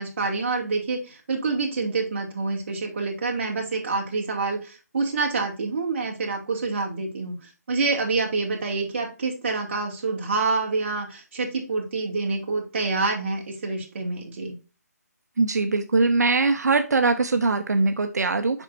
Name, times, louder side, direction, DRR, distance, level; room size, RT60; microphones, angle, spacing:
voice 1, 0.0-7.3 7.7-14.6, right 3 dB, 40° right, 2 dB, 2.1 m, -27 dB
voice 2, 15.4-18.6, right 3 dB, 75° right, 7 dB, 0.8 m, -22 dB
7.2 x 5.4 x 2.5 m, 0.32 s
hypercardioid pair, 160°, 9 cm